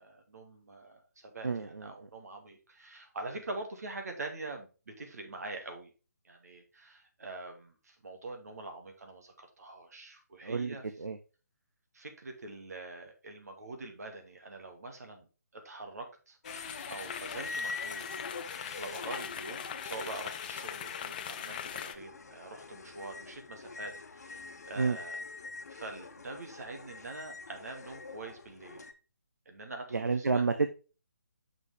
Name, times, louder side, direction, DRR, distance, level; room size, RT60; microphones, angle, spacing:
voice 1, 0.0-5.9 6.2-10.8 11.9-15.3 15.5-16.4 16.9-18.1 18.8-25.2 25.7-28.9 29.5-30.4, right 2 dB, 65° right, 4 dB, 2.1 m, -44 dB
voice 2, 1.4-1.9 10.4-11.2 24.8-25.0 29.9-30.7, right 4 dB, 85° right, 8 dB, 0.7 m, -30 dB
sound 1, 16.4-28.9, left 4 dB, 65° left, 1.1 m, -44 dB
sound 2, 16.4-21.9, left 9 dB, 30° left, 0.5 m, -41 dB
6.2 x 5.6 x 3.4 m, 0.33 s
figure-of-eight pair, 150°, 9 cm